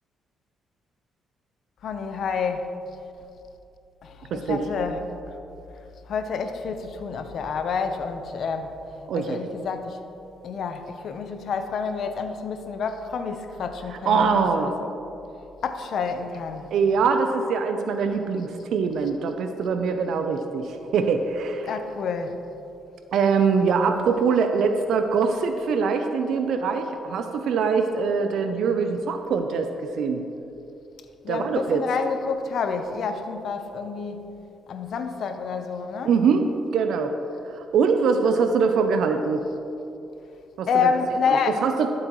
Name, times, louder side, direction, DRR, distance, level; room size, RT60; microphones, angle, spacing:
voice 1, 1.8-2.7 4.0-5.0 6.1-8.8 9.1-10.0 10.4-14.9 15.6-16.7 21.7-22.4 31.2-34.2 34.7-36.1 40.7-41.6, left 5 dB, 65° left, 7 dB, 0.7 m, -28 dB
voice 2, 4.3-4.6 9.1-9.4 14.1-14.7 16.7-21.8 23.1-30.2 31.3-31.8 36.0-36.4 36.7-37.1 37.5-39.4 40.6-40.9 41.3-41.4 41.6-41.9, right 5 dB, 75° right, 7 dB, 0.5 m, -23 dB
12.5 x 7.8 x 3.1 m, 2.8 s
cardioid pair, 90°, 0 cm